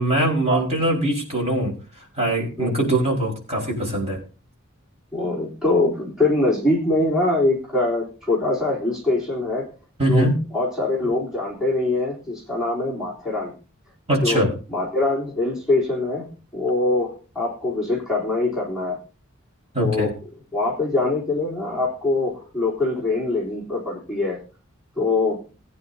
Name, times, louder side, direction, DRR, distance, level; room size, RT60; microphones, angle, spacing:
voice 1, 0.0-1.7 2.2-4.2 10.0-10.4 14.1-14.5 19.7-20.1, right 1 dB, 30° right, -2 dB, 4.9 m, -21 dB
voice 2, 5.1-9.7 10.1-13.5 14.2-19.0 19.8-20.1 20.5-24.4 25.0-25.4, left 2 dB, 5° right, -5 dB, 3.5 m, -23 dB
21.0 x 9.7 x 2.8 m, 0.37 s
head